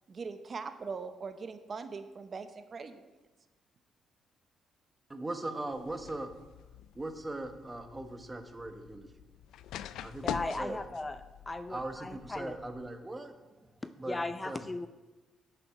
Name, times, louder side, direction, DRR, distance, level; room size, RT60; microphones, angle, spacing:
voice 1, 0.1-3.1, right 5 dB, 40° right, 8 dB, 0.8 m, -41 dB
voice 2, 5.1-6.3 6.9-9.1 10.0-10.3 10.6-10.9 11.7-13.3 14.0-14.2 14.4-14.6, right 2 dB, 20° right, 6 dB, 1.2 m, -39 dB
sound 1, 5.7-12.9, left 11 dB, 85° left, 0.3 m, -45 dB
voice 3, 10.2-11.2 11.5-12.6 13.8-14.9, left 2 dB, 20° left, 10 dB, 0.5 m, -37 dB
11.0 x 7.0 x 4.7 m, 1.1 s
cardioid pair, 90°, 0 cm